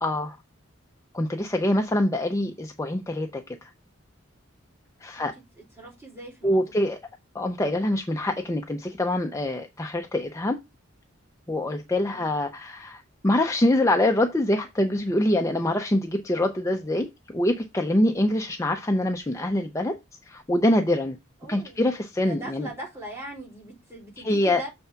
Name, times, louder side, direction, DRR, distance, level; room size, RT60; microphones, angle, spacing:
voice 1, 0.0-0.4 1.1-3.7 5.0-5.3 6.4-7.0 7.3-10.6 11.5-20.0 20.2-21.2 21.5-22.7 24.2-24.6, left 1 dB, 15° left, 0.5 m, -25 dB
voice 2, 5.8-6.6 12.1-12.3 18.2-18.4 21.4-21.8 22.2-24.7, right 2 dB, 10° right, 3.4 m, -40 dB
6.9 x 3.4 x 5.6 m
head